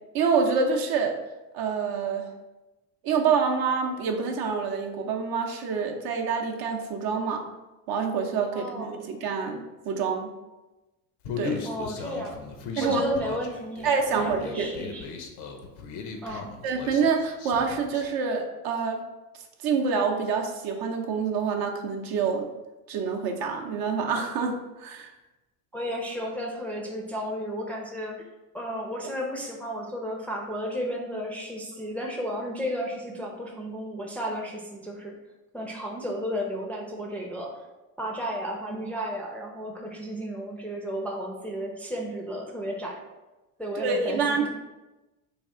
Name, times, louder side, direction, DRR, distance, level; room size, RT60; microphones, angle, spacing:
voice 1, 0.1-1.2 1.5-2.3 3.0-7.4 7.9-10.3 11.4-11.6 12.8-13.0 13.8-14.7 16.3-19.0 19.6-22.5 22.9-25.1 43.8-44.5, right 5 dB, 55° right, 2 dB, 0.6 m, -27 dB
voice 2, 8.5-9.0 11.6-12.4 12.8-15.1 16.2-16.5 25.7-28.2 28.5-35.1 35.5-37.6 38.0-43.0 43.6-44.5, equal, 5° left, -2 dB, 0.5 m, -33 dB
Human voice, 11.2-18.1, left 5 dB, 65° left, 0.7 m, -37 dB
3.4 x 2.4 x 3.6 m, 1.1 s
supercardioid pair, 90°, 43 cm